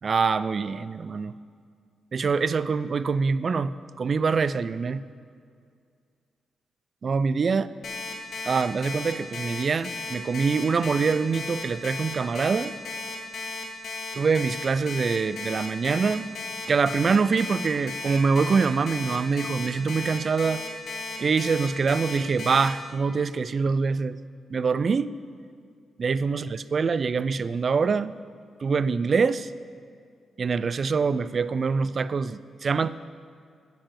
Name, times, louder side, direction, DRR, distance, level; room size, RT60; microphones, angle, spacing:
voice 1, 0.0-1.3 2.1-5.0 7.0-7.7 8.4-12.7 14.1-16.3 16.7-20.6 21.2-24.2 24.5-25.1 26.0-28.1 28.6-29.5 30.4-32.9, right 5 dB, 50° right, 16 dB, 0.4 m, -24 dB
Alarm, 7.8-22.7, left 4 dB, 60° left, 2.1 m, -35 dB
9.0 x 7.5 x 7.5 m, 2.2 s
hypercardioid pair, 40°, 0 cm